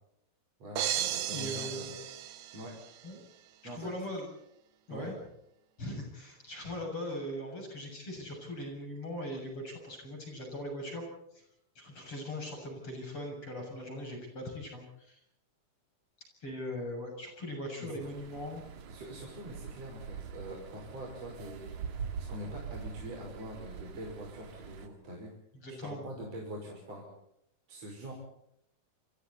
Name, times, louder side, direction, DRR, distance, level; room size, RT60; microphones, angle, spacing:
voice 1, 0.6-1.7 2.5-2.7 3.6-3.9 4.9-5.1 17.8-18.0 18.9-21.7 22.3-25.3 25.8-27.0 27.7-28.1, equal, 40° right, -1 dB, 6.7 m, -44 dB
sound 1, 0.8-3.0, right 11 dB, 90° right, 3.5 m, -35 dB
voice 2, 1.3-2.0 3.0-3.2 3.7-4.3 4.9-5.2 5.8-11.0 11.3-11.4 11.8-15.2 16.4-18.6 25.5-26.0, left 1 dB, 35° left, 2 dB, 7.9 m, -40 dB
sound 2, 18.0-24.9, right 6 dB, 55° right, 3.1 m, -44 dB
29.0 x 27.0 x 4.2 m, 0.78 s
omnidirectional pair, 4.5 m